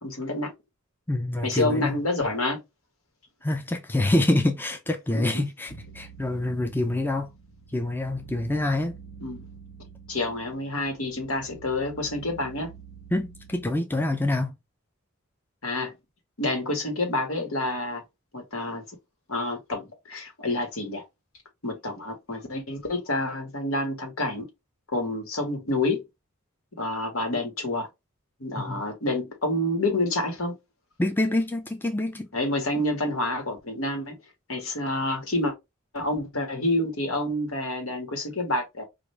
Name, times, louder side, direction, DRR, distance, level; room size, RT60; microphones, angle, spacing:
voice 1, 0.0-0.5 1.4-2.6 5.1-5.4 9.2-9.4 10.1-12.7 15.6-15.9 16.4-18.0 18.3-18.8 19.3-21.0 21.6-24.5 24.9-26.0 26.7-27.9 28.4-30.5 32.3-34.2 34.5-35.5 35.9-38.8, left 2 dB, 80° left, 1.7 m, -28 dB
voice 2, 1.1-2.0 3.4-7.3 7.7-9.0 13.1-14.5 28.6-28.8 31.0-32.3, left 1 dB, 10° left, 0.5 m, -26 dB
sound 1, 5.7-13.7, right 6 dB, 60° left, 1.0 m, -47 dB
5.0 x 2.5 x 3.3 m
head